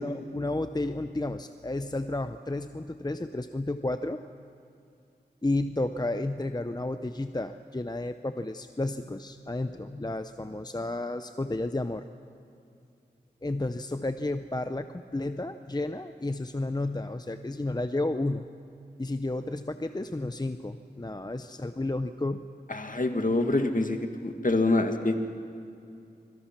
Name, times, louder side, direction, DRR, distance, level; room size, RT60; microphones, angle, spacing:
voice 1, 0.0-4.2 5.4-12.0 13.4-18.4 19.0-22.4, left 2 dB, 25° left, 9 dB, 0.6 m, -32 dB
voice 2, 22.7-25.2, left 2 dB, 50° left, 5 dB, 1.9 m, -26 dB
26.0 x 22.0 x 6.0 m, 2.6 s
wide cardioid pair, 50°, 18 cm